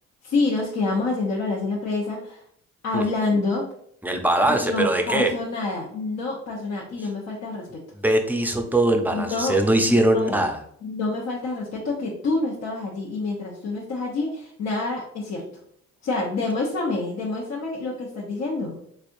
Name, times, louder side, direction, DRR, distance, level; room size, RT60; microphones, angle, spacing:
voice 1, 0.2-2.4 2.8-3.7 4.5-7.8 9.1-9.5 9.9-10.4 10.8-15.4 16.0-18.8, left 3 dB, 60° left, -3 dB, 0.8 m, -27 dB
voice 2, 4.0-5.3 8.0-10.6, right 1 dB, 5° right, 3 dB, 0.6 m, -21 dB
3.6 x 3.3 x 2.5 m, 0.69 s
cardioid pair, 90°, 30 cm